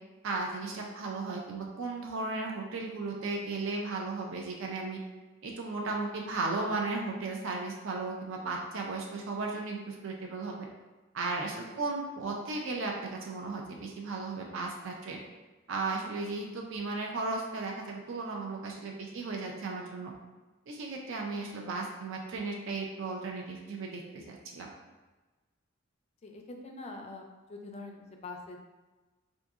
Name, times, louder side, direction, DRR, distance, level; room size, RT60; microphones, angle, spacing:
voice 1, 0.2-5.0 5.4-10.7 11.1-15.2 15.7-20.1 20.7-24.7, right 3 dB, 65° right, 0 dB, 0.4 m, -35 dB
voice 2, 18.9-19.7 26.2-28.6, left 3 dB, 30° left, 3 dB, 0.3 m, -45 dB
3.8 x 2.6 x 2.4 m, 1.2 s
head